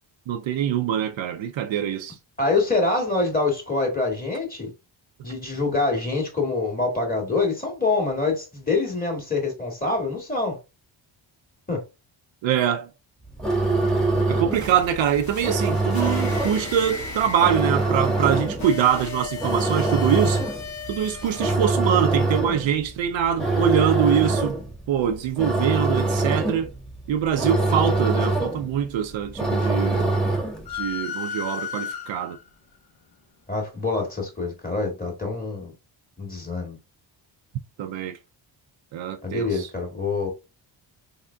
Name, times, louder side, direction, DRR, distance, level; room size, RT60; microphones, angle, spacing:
voice 1, 0.3-2.2 12.4-12.9 14.3-20.4 20.9-24.6 24.9-26.7 27.1-30.1 30.7-32.4 37.8-38.2 38.9-39.7, right 9 dB, 70° right, 0.6 m, -24 dB
voice 2, 2.4-4.7 5.2-10.6 11.7-11.8 33.5-35.7 36.2-36.8 39.2-40.3, left 3 dB, 20° left, 2.0 m, -25 dB
sound 1, 13.3-30.7, right 2 dB, ahead, 1.3 m, -25 dB
sound 2, 14.5-21.6, left 4 dB, 85° left, 1.9 m, -37 dB
sound 3, 30.7-32.5, left 7 dB, 50° left, 0.9 m, -32 dB
3.7 x 3.5 x 2.2 m
cardioid pair, 55°, 48 cm